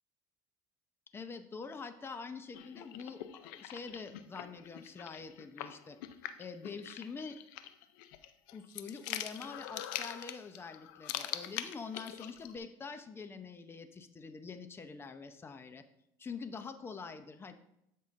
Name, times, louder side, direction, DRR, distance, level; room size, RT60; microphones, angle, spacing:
voice 1, 1.1-6.0 6.4-7.4 8.5-15.8 16.2-17.5, left 5 dB, 25° left, 9 dB, 0.7 m, -45 dB
sound 1, 2.5-12.6, left 12 dB, 80° left, 0.5 m, -44 dB
13.0 x 5.5 x 2.6 m, 0.79 s
supercardioid pair, 105°, 10 cm